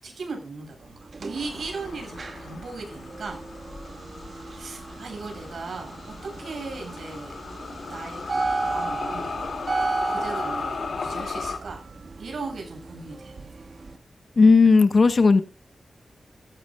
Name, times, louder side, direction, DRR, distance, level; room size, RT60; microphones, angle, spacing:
voice 1, 0.0-3.5 4.5-7.3 7.9-11.9 12.2-13.5, right 4 dB, 70° right, 3 dB, 8.0 m, -38 dB
sound 1, 0.8-14.0, right 3 dB, 50° right, 1.8 m, -34 dB
sound 2, 1.3-11.6, left 4 dB, 65° left, 2.6 m, -36 dB
voice 2, 14.4-15.4, left 4 dB, 45° left, 11 dB, 1.2 m, -15 dB
15.5 x 15.0 x 2.5 m, 0.31 s
wide cardioid pair, 170°, 0 cm